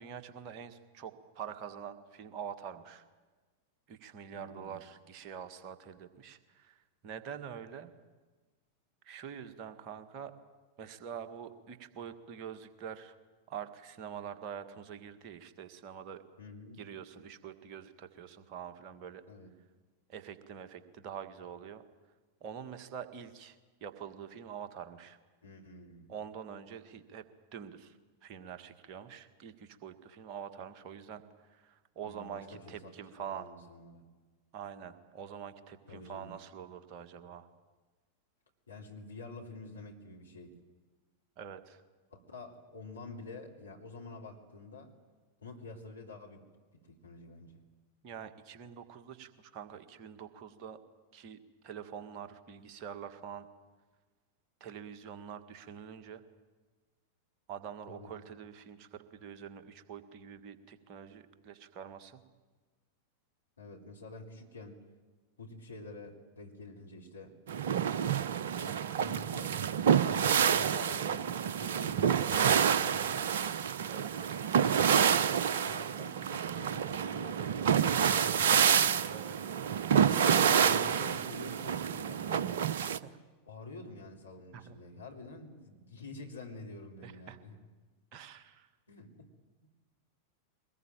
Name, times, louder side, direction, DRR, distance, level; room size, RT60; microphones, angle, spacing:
voice 1, 0.0-3.0 3.9-7.9 9.0-10.4 10.8-13.1 13.5-16.2 16.8-19.3 20.1-21.8 22.4-25.2 26.1-27.3 27.5-28.0 28.2-33.5 34.5-37.5 41.4-41.8 48.0-50.8 51.1-53.5 54.6-56.2 57.5-62.2 73.9-74.7 79.1-79.6 84.5-84.7 87.0-87.4 88.1-88.7, right 8 dB, 40° right, 8 dB, 1.7 m, -45 dB
voice 2, 4.3-4.8 16.4-16.8 19.3-19.5 25.4-26.1 32.0-34.1 35.9-36.4 38.7-40.5 42.1-44.9 45.4-46.4 46.7-47.6 57.9-58.1 63.6-64.8 65.4-67.4 68.6-69.6 69.9-73.6 75.6-78.8 80.1-82.9 83.4-87.6 88.9-89.3, left 2 dB, 75° left, 0 dB, 3.4 m, -48 dB
sound 1, 67.5-83.0, right 8 dB, 60° right, 0.7 m, -28 dB
23.0 x 20.0 x 9.1 m, 1.3 s
figure-of-eight pair, 90°, 0 cm